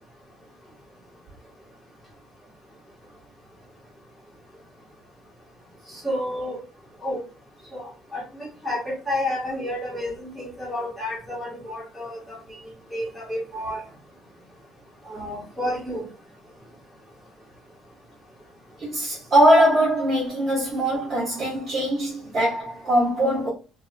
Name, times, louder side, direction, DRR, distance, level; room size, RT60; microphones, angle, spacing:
voice 1, 5.9-6.6 7.0-7.2 7.7-12.4 12.9-13.8 15.0-16.1, left 1 dB, 5° left, 1.6 m, -30 dB
voice 2, 18.8-23.5, equal, 25° right, 1.3 m, -21 dB
3.2 x 2.7 x 2.4 m
cardioid pair, 170°, 0 cm